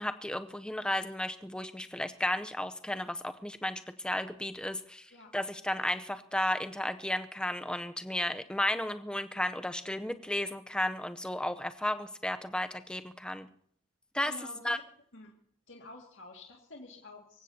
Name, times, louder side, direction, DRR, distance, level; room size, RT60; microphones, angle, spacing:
voice 1, 0.0-5.1 5.3-13.5 14.1-14.3 14.6-14.8, left 1 dB, 5° left, 9 dB, 0.6 m, -33 dB
voice 2, 14.2-14.8 15.1-15.3 15.7-17.4, left 2 dB, 75° left, 0 dB, 2.1 m, -49 dB
25.0 x 15.5 x 2.8 m, 0.66 s
head